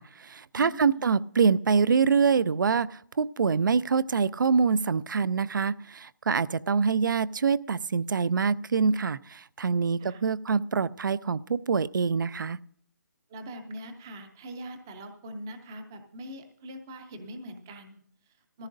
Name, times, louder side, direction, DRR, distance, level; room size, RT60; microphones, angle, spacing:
voice 1, 0.0-12.6, right 5 dB, 85° right, 20 dB, 0.4 m, -25 dB
voice 2, 0.5-1.1 10.0-10.2 13.3-18.7, equal, 10° right, 7 dB, 0.4 m, -43 dB
18.5 x 14.5 x 2.6 m, 0.62 s
hypercardioid pair, 180°, 10 cm